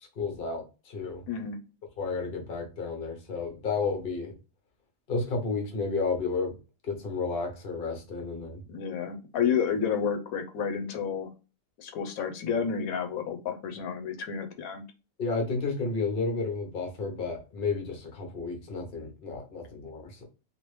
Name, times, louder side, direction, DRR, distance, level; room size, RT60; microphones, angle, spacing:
voice 1, 0.2-1.2 2.0-4.3 5.1-6.6 6.8-8.6 15.2-20.2, left 4 dB, 45° left, 0.9 m, -32 dB
voice 2, 1.3-1.6 8.7-11.3 11.8-14.8, left 7 dB, 90° left, 1.1 m, -30 dB
3.0 x 2.6 x 3.1 m
omnidirectional pair, 1.5 m